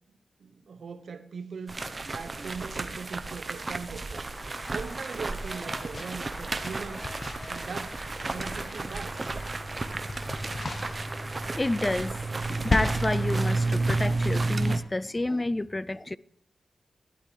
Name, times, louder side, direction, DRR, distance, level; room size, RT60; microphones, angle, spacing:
voice 1, 0.4-1.8 2.1-4.3 4.7-7.1 7.5-8.0 8.3-9.3, right 5 dB, 65° right, 0.8 m, -40 dB
sound 1, 1.7-14.8, right 3 dB, 35° right, 0.7 m, -32 dB
Cheering / Applause, 4.2-14.2, right 1 dB, 5° right, 1.3 m, -43 dB
sound 2, 5.7-9.2 9.5-14.3, left 3 dB, 45° left, 0.9 m, -37 dB
voice 2, 11.6-12.2 12.5-16.2, left 2 dB, 20° left, 0.3 m, -29 dB
13.0 x 11.5 x 3.2 m
wide cardioid pair, 100°, 0 cm